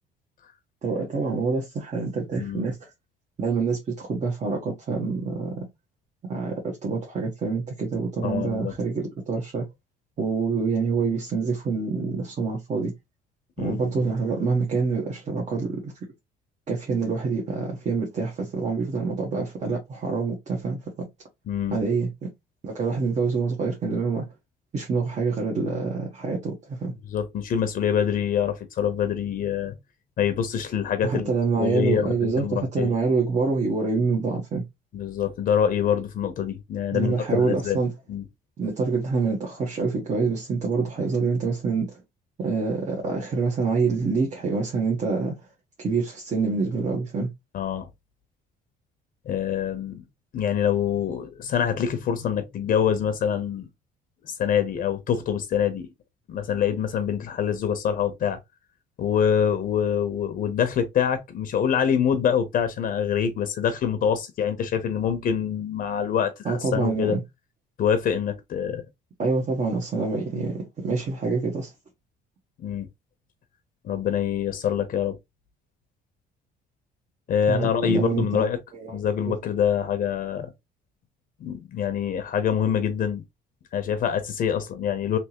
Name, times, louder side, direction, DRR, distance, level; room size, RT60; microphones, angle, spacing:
voice 1, 0.8-2.9 3.4-5.5 6.2-9.6 10.2-12.9 13.6-15.9 16.7-21.1 21.7-22.3 22.6-24.2 24.7-26.9 31.0-34.6 36.9-37.9 38.6-42.0 42.4-45.3 45.8-47.3 66.4-67.2 69.2-71.7 77.5-78.4 78.7-79.0 79.2-79.3, right 4 dB, 45° right, 1.2 m, -26 dB
voice 2, 2.4-2.7 8.2-8.7 13.6-13.9 21.5-21.8 27.0-29.8 30.2-31.3 31.6-32.9 34.9-37.8 38.1-38.2 47.5-47.9 49.3-50.0 50.3-53.7 54.2-55.9 56.3-58.4 59.0-67.2 67.8-68.8 72.6-72.9 73.8-75.2 77.3-78.6 78.9-80.5 81.4-83.2 83.7-85.2, left 8 dB, 55° left, 0.8 m, -25 dB
3.4 x 2.9 x 2.9 m
cardioid pair, 110°, 17 cm